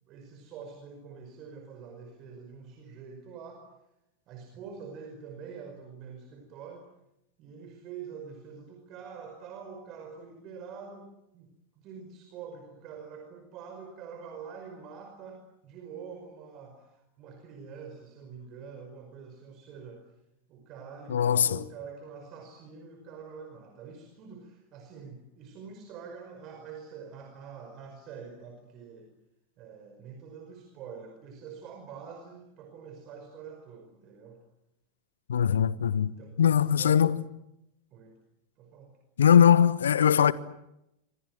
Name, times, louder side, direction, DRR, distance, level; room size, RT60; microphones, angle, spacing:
voice 1, 0.1-3.6 4.3-6.8 7.4-11.5 11.8-20.0 20.5-29.1 29.6-34.4 35.5-35.7 36.0-37.2 37.9-38.2 38.6-39.0, right 6 dB, 35° right, 5.2 m, -45 dB
voice 2, 21.1-21.6 35.3-37.2 39.2-40.3, left 8 dB, 65° left, 1.2 m, -21 dB
27.0 x 25.5 x 7.8 m
figure-of-eight pair, 90°, 0 cm